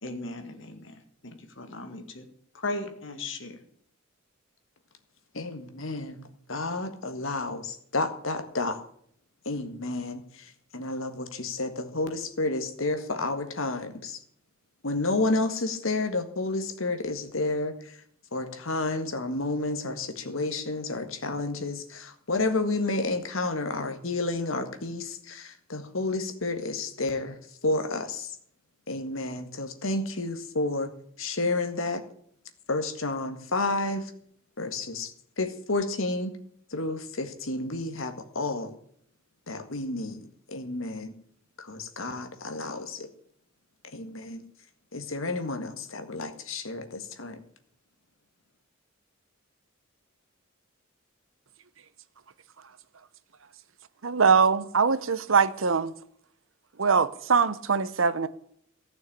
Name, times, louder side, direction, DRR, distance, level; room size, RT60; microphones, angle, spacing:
voice 1, 0.0-2.3 2.5-3.6, left 2 dB, 65° left, 2.2 m, -37 dB
voice 2, 5.4-6.2 6.5-8.8 9.5-10.2 10.7-14.2 14.8-17.7 18.3-27.3 27.6-28.3 28.9-30.9 31.2-32.0 32.7-34.1 34.6-35.1 35.4-36.3 36.7-38.7 39.5-41.1 41.7-43.1 43.9-44.4 44.9-47.4, left 2 dB, 80° left, 1.8 m, -30 dB
voice 3, 54.0-55.9 56.8-58.3, right 5 dB, 80° right, 0.9 m, -22 dB
15.0 x 6.4 x 8.5 m
head